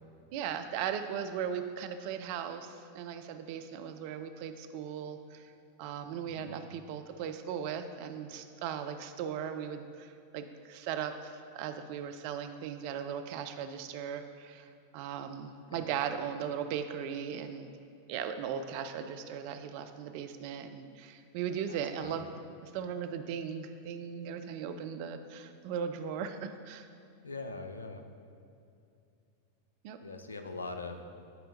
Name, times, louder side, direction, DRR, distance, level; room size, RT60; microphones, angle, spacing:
voice 1, 0.3-5.5 5.8-14.7 14.9-17.7 18.1-22.3 22.6-26.9 29.8-30.0, right 8 dB, 45° right, 8 dB, 0.4 m, -38 dB
voice 2, 21.7-22.3 27.2-28.0 30.0-31.1, left 3 dB, 75° left, 7 dB, 0.4 m, -42 dB
9.8 x 4.4 x 2.6 m, 2.6 s
figure-of-eight pair, 90°, 0 cm